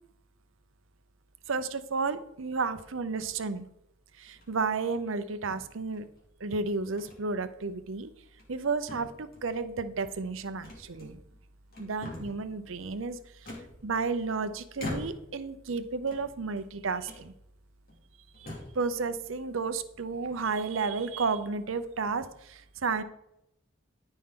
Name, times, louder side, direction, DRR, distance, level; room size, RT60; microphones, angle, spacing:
voice 1, 1.5-3.7 4.2-6.0 6.4-8.1 8.5-11.2 11.8-13.5 13.8-17.3 18.4-18.5 18.7-23.0, right 4 dB, 80° right, 12 dB, 0.7 m, -32 dB
sound 1, 4.3-4.7 5.5-6.2 7.0-7.2 7.6-7.7 8.2-8.6 8.9-9.6 10.6-11.4 11.7-12.5 13.4-14.3 14.8-15.4 16.0-16.7 17.0-17.3 17.9-18.0 18.3-18.8, left 1 dB, 45° left, 2.7 m, -43 dB
14.0 x 5.4 x 3.8 m, 0.78 s
head